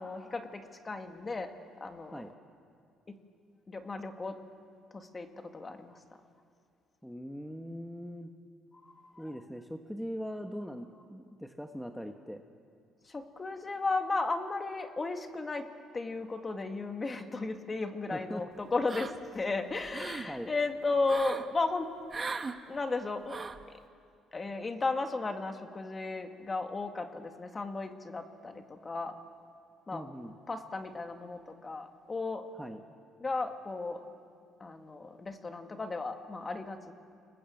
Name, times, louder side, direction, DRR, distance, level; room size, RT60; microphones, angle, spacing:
voice 1, 0.0-1.5 1.8-2.2 3.1-3.2 3.7-4.4 4.9-6.0 9.2-9.3 13.1-15.7 15.9-21.9 22.7-23.4 24.3-29.2 29.9-30.1 30.5-32.4 33.2-34.0 34.6-36.9, left 3 dB, 25° left, 6 dB, 2.1 m, -35 dB
voice 2, 7.0-8.3 9.2-12.4 18.1-18.4 20.3-20.5 29.9-30.4 32.6-32.8, equal, ahead, 5 dB, 1.3 m, -41 dB
sound 1, 18.9-19.4 19.7-20.3 21.1-21.5 22.1-22.6 23.3-23.6, right 4 dB, 30° right, 1.3 m, -38 dB
29.0 x 20.0 x 7.9 m, 2.3 s
cardioid pair, 95°, 0 cm